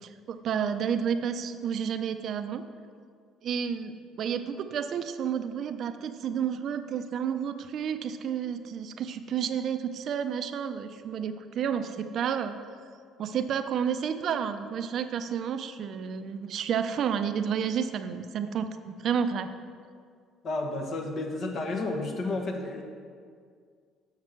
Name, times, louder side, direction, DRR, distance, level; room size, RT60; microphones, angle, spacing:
voice 1, 0.0-2.6 3.4-12.6 13.2-19.5, right 7 dB, 60° right, 10 dB, 0.5 m, -31 dB
voice 2, 20.4-22.8, left 2 dB, 50° left, 3 dB, 1.2 m, -31 dB
6.5 x 6.0 x 5.9 m, 2.1 s
supercardioid pair, 75°, 0 cm